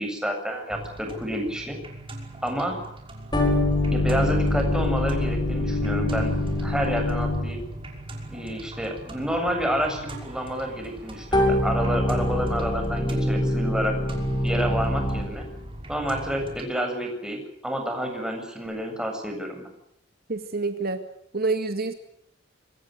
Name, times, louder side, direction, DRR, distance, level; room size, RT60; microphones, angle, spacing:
voice 1, 0.0-1.8 2.4-2.8 3.9-7.6 8.3-14.0 14.4-15.5 15.9-19.7, equal, 5° right, 3 dB, 7.7 m, -29 dB
sound 1, 0.7-16.6, right 1 dB, 30° right, 5.8 m, -40 dB
sound 2, 3.3-7.8 11.3-15.5, left 1 dB, 25° left, 7.6 m, -24 dB
voice 2, 20.3-21.0 21.3-21.9, right 3 dB, 55° right, 7 dB, 1.9 m, -27 dB
27.0 x 24.5 x 6.5 m, 0.74 s
head